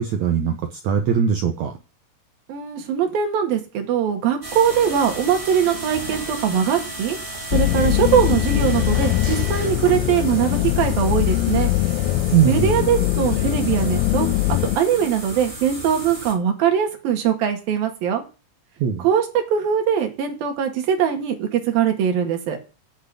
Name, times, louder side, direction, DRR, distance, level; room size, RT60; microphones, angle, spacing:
voice 1, 0.0-1.7 12.3-12.9 18.8-19.1, right 8 dB, 65° right, 5 dB, 2.1 m, -21 dB
voice 2, 2.5-7.2 7.5-11.7 12.4-14.3 14.8-18.2 19.0-22.6, right 8 dB, 80° right, 5 dB, 3.9 m, -21 dB
sound 1, 4.4-16.3, right 1 dB, 10° right, 4.2 m, -34 dB
sound 2, 7.5-14.8, left 15 dB, 90° left, 2.7 m, -21 dB
9.1 x 8.1 x 8.3 m, 0.33 s
omnidirectional pair, 4.1 m